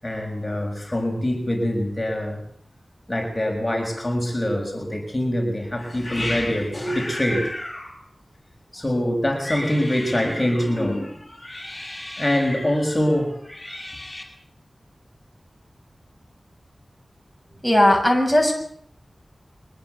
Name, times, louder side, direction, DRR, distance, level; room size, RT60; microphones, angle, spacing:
voice 1, 0.0-2.4 3.1-8.0 8.7-14.2, left 1 dB, 15° left, 1 dB, 6.6 m, -25 dB
voice 2, 17.6-18.5, left 1 dB, 5° right, 3 dB, 7.1 m, -17 dB
24.5 x 20.5 x 8.2 m, 0.65 s
wide cardioid pair, 75°, 0 cm